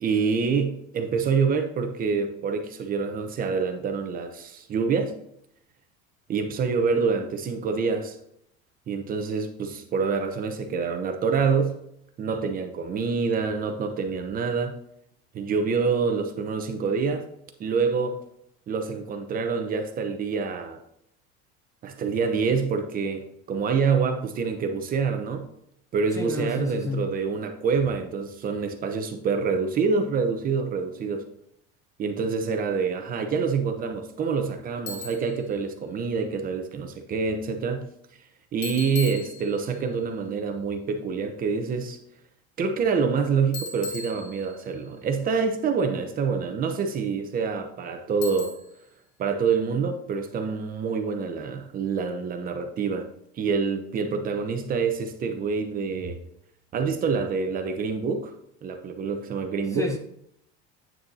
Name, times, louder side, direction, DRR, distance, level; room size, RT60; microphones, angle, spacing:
voice 1, 0.0-5.1 6.3-8.2 8.9-11.8 12.2-14.8 15.3-17.2 17.6-18.2 18.7-20.8 21.8-25.5 25.9-31.3 32.0-37.9 38.5-42.0 42.6-48.5 49.2-53.1 53.3-56.2 56.7-58.3 58.6-59.9, right 5 dB, 30° right, 0.9 m, -26 dB
voice 2, 26.1-27.1 59.7-60.0, left 3 dB, 10° left, 0.5 m, -30 dB
Bicycle, 34.9-35.4 38.6-39.8 43.5-44.8 48.2-48.9, left 4 dB, 75° left, 2.4 m, -38 dB
9.1 x 6.5 x 2.8 m
cardioid pair, 155°, 29 cm